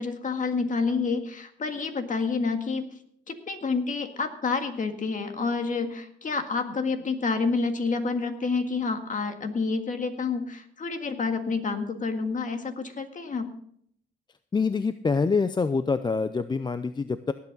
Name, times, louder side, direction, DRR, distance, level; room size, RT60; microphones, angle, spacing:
voice 1, 0.0-2.9 3.3-13.5, left 4 dB, 40° left, 7 dB, 1.8 m, -28 dB
voice 2, 14.5-17.3, left 4 dB, 20° left, 12 dB, 0.5 m, -25 dB
18.5 x 8.5 x 3.9 m, 0.64 s
cardioid pair, 90°, 20 cm